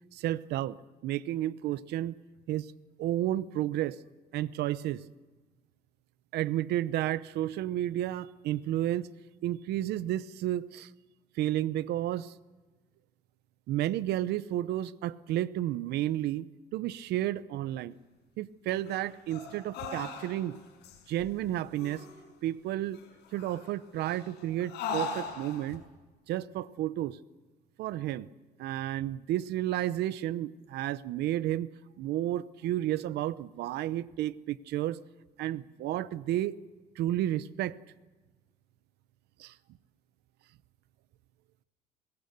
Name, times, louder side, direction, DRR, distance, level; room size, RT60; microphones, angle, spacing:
voice 1, 0.1-0.8 1.0-2.1 2.5-2.7 3.0-4.0 4.3-5.0 6.3-9.1 9.4-10.9 11.4-12.3 13.7-17.9 18.4-20.6 21.1-22.1 22.4-23.0 23.3-25.8 26.3-27.2 27.8-28.3 28.6-31.7 32.0-35.0 35.4-36.6 37.0-37.8 39.4-39.5, right 13 dB, 75° right, 17 dB, 0.8 m, -32 dB
sound 1, 18.9-20.6 20.8-21.4 21.8-22.3 22.9-23.7 24.0-25.8, left 4 dB, 85° left, 5.6 m, -39 dB
25.0 x 21.5 x 6.8 m, 1.3 s
cardioid pair, 110°, 17 cm